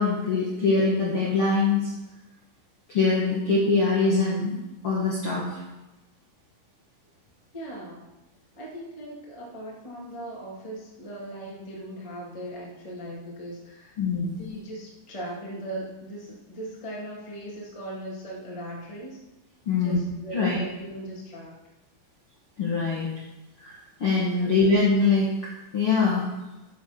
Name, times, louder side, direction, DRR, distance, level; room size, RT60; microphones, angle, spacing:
voice 1, 0.0-1.9 2.9-4.6 4.8-5.5 14.0-14.4 19.6-20.0 20.3-20.6 22.6-23.1 23.6-25.3 25.7-26.3, left 4 dB, 70° left, -5 dB, 1.2 m, -23 dB
voice 2, 7.5-8.0 8.5-14.0 14.4-19.2 19.7-21.6 24.4-24.7, right 1 dB, 55° left, -4 dB, 0.3 m, -39 dB
10.5 x 7.3 x 6.8 m, 1.0 s
omnidirectional pair, 5.8 m